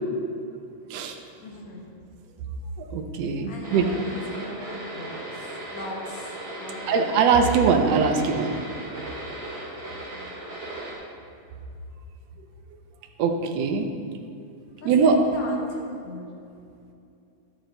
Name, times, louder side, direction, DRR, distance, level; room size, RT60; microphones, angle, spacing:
voice 1, 1.4-1.8 3.5-6.3 6.6-7.0 9.8-10.4 14.8-15.8 16.0-16.3, left 1 dB, 60° left, -3 dB, 2.6 m, -39 dB
voice 2, 2.9-3.9 6.9-8.6 13.2-13.9 14.8-15.2, right 5 dB, 75° right, 4 dB, 1.6 m, -21 dB
sound 1, 3.6-10.9, right 1 dB, 20° right, 2.0 m, -37 dB
12.5 x 7.6 x 4.0 m, 2.5 s
omnidirectional pair, 3.8 m